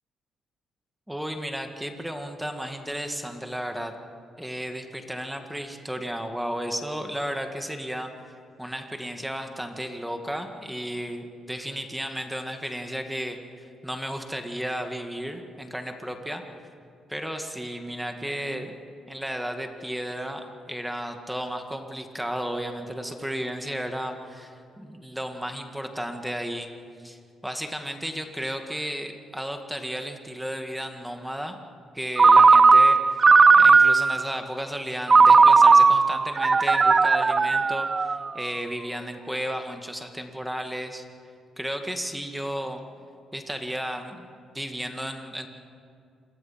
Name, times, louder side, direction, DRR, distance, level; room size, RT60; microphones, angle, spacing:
voice 1, 1.1-3.9 4.4-8.1 8.6-16.4 17.1-18.8 19.1-26.7 27.0-31.6 31.9-33.2 33.6-41.0 41.6-42.8 43.3-44.3 44.5-45.5, equal, 5° right, 5 dB, 1.9 m, -33 dB
Ringtone, 32.2-34.3 35.1-38.4, right 4 dB, 35° right, 0.5 m, -16 dB
27.0 x 22.0 x 5.8 m, 2.4 s
cardioid pair, 90°, 0 cm